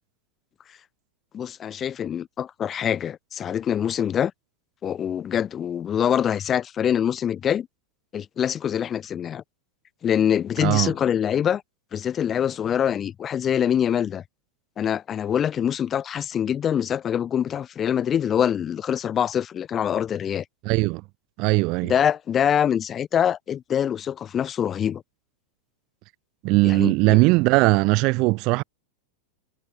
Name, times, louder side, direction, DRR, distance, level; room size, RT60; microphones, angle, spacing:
voice 1, 1.3-4.3 4.8-7.7 8.1-9.4 10.0-11.6 11.9-14.2 14.8-20.4 21.8-25.0 26.6-27.2, left 9 dB, 25° left, 0.5 m, -24 dB
voice 2, 10.6-10.9 20.6-21.0 21.4-21.9 26.4-28.6, right 25 dB, 40° right, 0.5 m, -19 dB
figure-of-eight pair, 90°, 0 cm